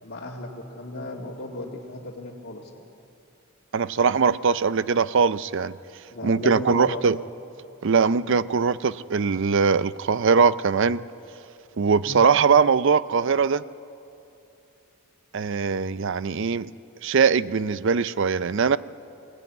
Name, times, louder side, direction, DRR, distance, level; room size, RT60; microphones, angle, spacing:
voice 1, 0.0-2.8 6.1-7.1 12.0-12.3, left 1 dB, 55° left, -5 dB, 2.1 m, -35 dB
voice 2, 3.7-5.8 6.2-7.2 7.8-11.0 11.8-13.6 15.3-16.7 17.0-18.8, right 5 dB, 65° right, 16 dB, 0.5 m, -21 dB
22.0 x 19.5 x 9.4 m, 2.7 s
head